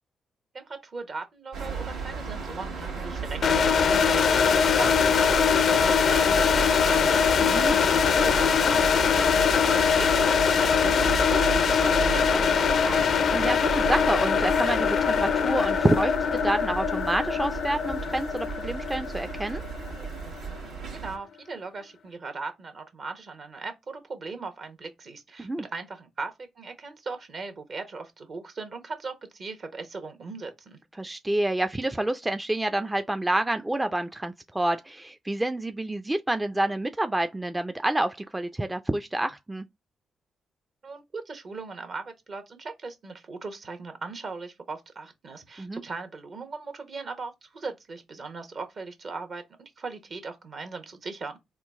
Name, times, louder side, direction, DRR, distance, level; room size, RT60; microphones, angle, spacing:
voice 1, 0.5-7.5 8.1-13.2 20.9-30.8 40.8-51.4, right 4 dB, 55° right, 1.0 m, -38 dB
sound 1, 1.5-21.2, right 5 dB, 85° right, 1.3 m, -35 dB
sound 2, 3.4-20.3, left 6 dB, 65° left, 0.4 m, -23 dB
voice 2, 7.4-7.8 13.3-19.6 25.4-25.6 31.0-39.6 45.6-45.8, right 1 dB, 15° right, 0.4 m, -28 dB
3.7 x 2.3 x 3.5 m
hypercardioid pair, 45°, 0 cm